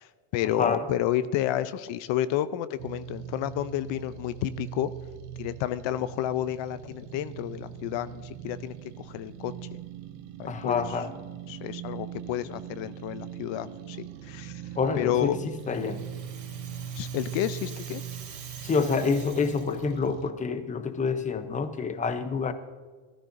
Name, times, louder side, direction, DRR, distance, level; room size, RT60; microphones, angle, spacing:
voice 1, 0.0-4.9 5.4-9.8 10.4-10.8 11.5-14.6 15.0-15.4 17.0-18.0, left 12 dB, 65° left, 14 dB, 0.6 m, -31 dB
voice 2, 0.6-0.9 10.5-11.1 14.8-16.1 18.6-22.5, left 5 dB, 15° left, 10 dB, 0.6 m, -28 dB
sound 1, 2.8-20.3, right 10 dB, 85° right, 0.8 m, -41 dB
Rattle (instrument), 15.3-20.1, right 6 dB, 35° right, 3.4 m, -47 dB
14.5 x 13.0 x 2.6 m, 1.5 s
cardioid pair, 115°, 49 cm